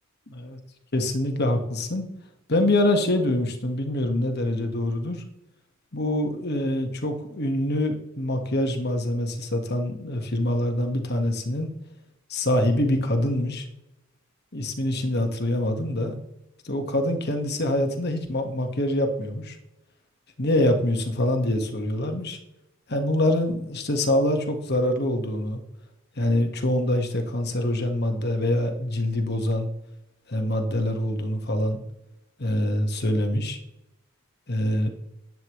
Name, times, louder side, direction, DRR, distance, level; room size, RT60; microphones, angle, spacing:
voice 1, 0.3-0.6 0.9-2.1 2.5-5.2 5.9-11.7 12.3-13.7 14.5-16.2 16.6-19.6 20.4-22.4 22.9-25.6 26.2-29.7 30.3-31.8 32.4-33.6 34.5-34.9, left 1 dB, 50° left, 5 dB, 1.7 m, -25 dB
11.5 x 9.1 x 3.2 m, 0.86 s
head